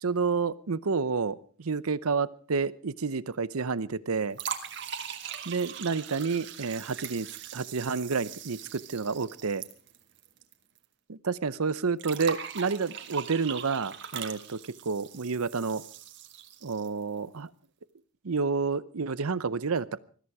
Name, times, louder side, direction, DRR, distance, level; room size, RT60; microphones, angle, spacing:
voice 1, 0.0-4.4 5.5-9.6 11.1-15.8 16.6-17.5 18.2-20.0, right 4 dB, 90° right, 17 dB, 0.8 m, -30 dB
sound 1, 4.3-10.5 10.8-10.9 12.0-17.0, right 7 dB, 55° right, 1.7 m, -40 dB
20.5 x 14.0 x 4.8 m, 0.43 s
head